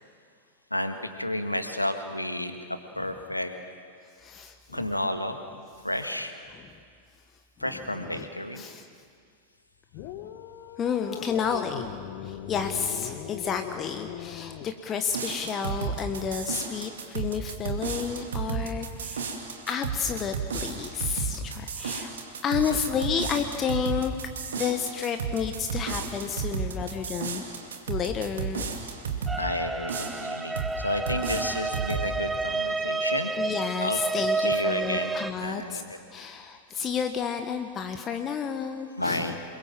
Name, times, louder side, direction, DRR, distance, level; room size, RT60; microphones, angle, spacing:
voice 1, 0.7-3.5 4.7-5.4 5.8-6.3 7.6-8.6 29.4-33.3 33.8-34.0 34.4-35.1 35.4-36.0 39.0-39.4, left 1 dB, 85° left, 7 dB, 1.7 m, -31 dB
voice 2, 4.2-4.8 6.5-6.6 8.1-8.3 8.6-8.9 10.8-11.9 12.2-19.4 19.7-22.1 22.4-24.2 24.5-27.4 27.9-28.8 33.4-35.8 36.1-39.3, left 7 dB, 25° left, 6 dB, 1.3 m, -31 dB
sound 1, 9.9-14.7, left 10 dB, 45° left, 1.5 m, -39 dB
sound 2, 15.1-29.4 29.9-30.8 31.1-32.1, right 6 dB, 65° right, 2.6 m, -33 dB
sound 3, 29.3-35.3, right 3 dB, 10° right, 0.7 m, -30 dB
27.5 x 22.5 x 7.6 m, 2.1 s
figure-of-eight pair, 90°, 0 cm